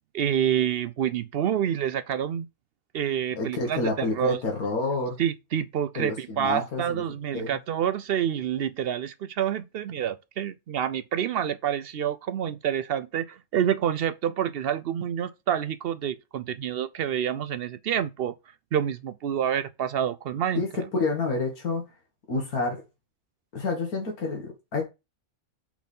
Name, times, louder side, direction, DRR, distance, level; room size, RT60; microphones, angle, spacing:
voice 1, 0.1-2.5 2.9-4.4 5.2-18.3 18.7-20.6, right 9 dB, 70° right, 0.5 m, -28 dB
voice 2, 3.4-5.2 6.0-7.0 7.3-7.6 20.6-21.9 22.3-22.8 23.5-24.8, left 3 dB, 85° left, 2.1 m, -29 dB
5.9 x 4.2 x 5.3 m
omnidirectional pair, 1.5 m